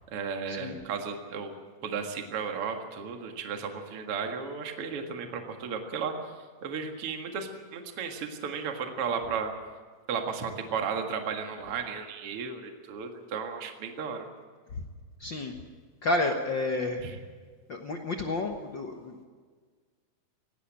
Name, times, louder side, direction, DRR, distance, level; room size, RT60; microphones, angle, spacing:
voice 1, 0.1-1.5 1.8-6.3 6.6-9.5 10.1-14.3 17.0-17.2, right 6 dB, 50° right, 4 dB, 2.4 m, -34 dB
voice 2, 15.2-15.5 16.0-17.0 17.7-19.2, left 2 dB, 55° left, 3 dB, 1.4 m, -30 dB
18.0 x 17.5 x 8.7 m, 1.5 s
omnidirectional pair, 3.8 m